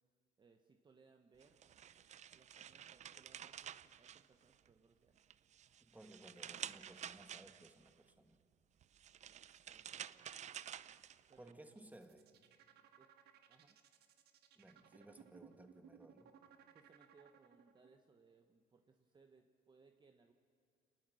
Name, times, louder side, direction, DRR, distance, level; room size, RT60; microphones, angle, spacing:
voice 1, 0.4-1.7 2.3-5.2 9.7-10.4 11.3-12.2 13.0-13.1 13.5-13.8 16.7-20.3, right 4 dB, 25° right, 5 dB, 1.2 m, -68 dB
sound 1, 1.4-4.8 5.2-7.9 8.8-11.5, right 9 dB, 45° right, 0.6 m, -51 dB
voice 2, 5.8-8.4 11.4-12.3 14.6-16.3, right 1 dB, 10° right, 6 dB, 1.9 m, -59 dB
sound 2, 11.7-18.0, right 9 dB, 70° right, 1.6 m, -63 dB
28.5 x 19.5 x 6.4 m, 2.1 s
cardioid pair, 110°, 17 cm